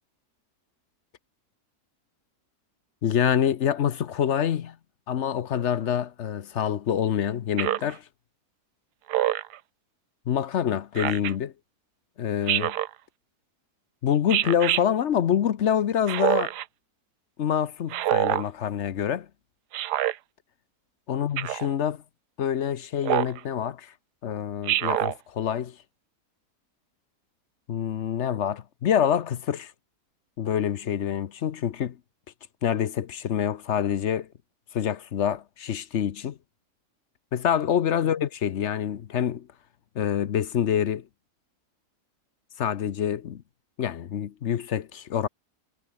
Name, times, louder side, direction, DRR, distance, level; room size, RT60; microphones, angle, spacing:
voice 1, 3.0-4.8 5.1-8.0 10.3-11.5 12.2-12.7 14.0-16.5 17.4-19.3 21.1-22.0 22.4-23.9 24.2-25.8 27.7-29.7 30.4-32.0 32.6-34.3 34.7-36.4 37.3-39.5 39.9-41.1 42.6-43.4 43.8-45.3, left 9 dB, 55° left, 0.9 m, -26 dB
Speech synthesizer, 7.6-7.9 9.1-9.6 11.0-11.3 12.5-12.9 14.3-14.8 16.1-16.6 17.9-18.5 19.7-20.1 21.4-21.7 23.0-23.4 24.7-25.1, right 13 dB, 85° right, 1.3 m, -25 dB
omnidirectional pair, 1.7 m